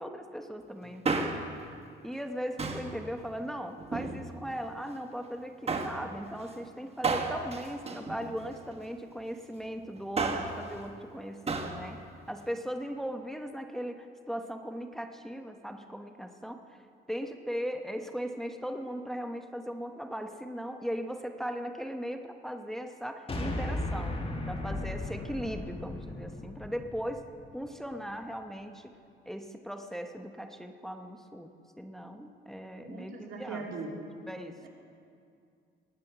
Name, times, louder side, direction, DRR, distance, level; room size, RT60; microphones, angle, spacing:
voice 1, 0.0-1.4 2.0-24.2 24.5-27.3 27.5-29.0 29.3-33.7 34.3-34.7, equal, ahead, 6 dB, 0.9 m, -38 dB
Male speech man speaking, 0.8-1.6 2.6-3.0 3.8-4.6 5.7-6.0 7.0-8.7 9.9-10.6 11.5-11.8 12.1-12.2, right 4 dB, 30° right, 1.3 m, -32 dB
sound 1, 23.3-27.7, left 1 dB, 30° left, 1.9 m, -36 dB
voice 2, 32.8-34.0 34.6-34.7, right 4 dB, 75° right, 0 dB, 2.7 m, -40 dB
20.0 x 9.5 x 5.9 m, 2.4 s
cardioid pair, 90°, 20 cm